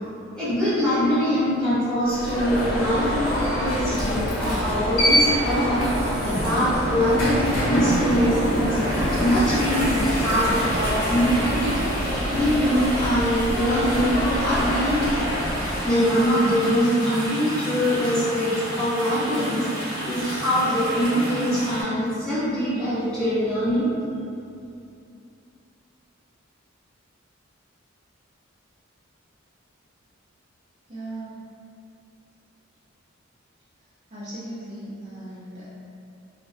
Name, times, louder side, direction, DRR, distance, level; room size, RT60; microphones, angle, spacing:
voice 1, 0.3-15.2 15.8-23.9, equal, 5° left, -14 dB, 0.7 m, -23 dB
Alarm, 2.0-16.0, equal, 85° left, 0.6 m, -25 dB
sound 1, 5.7-21.8, equal, 20° left, 1.0 m, -32 dB
voice 2, 30.9-31.5 34.1-35.7, right 1 dB, 35° right, -11 dB, 0.4 m, -37 dB
2.4 x 2.0 x 2.6 m, 2.6 s
head